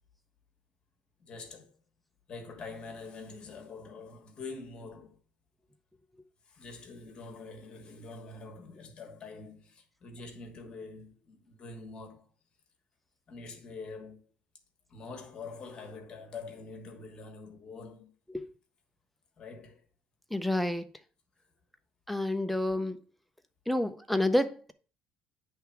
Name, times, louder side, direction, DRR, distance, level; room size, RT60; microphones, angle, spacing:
voice 1, 1.2-1.8 2.3-5.2 6.5-12.2 13.3-14.2 14.9-18.1 19.4-19.8, left 4 dB, 30° left, 1.4 m, -45 dB
voice 2, 20.3-20.9 22.1-23.0 23.7-24.7, left 1 dB, ahead, 0.5 m, -29 dB
9.9 x 3.4 x 4.6 m
cardioid pair, 175°, 3 cm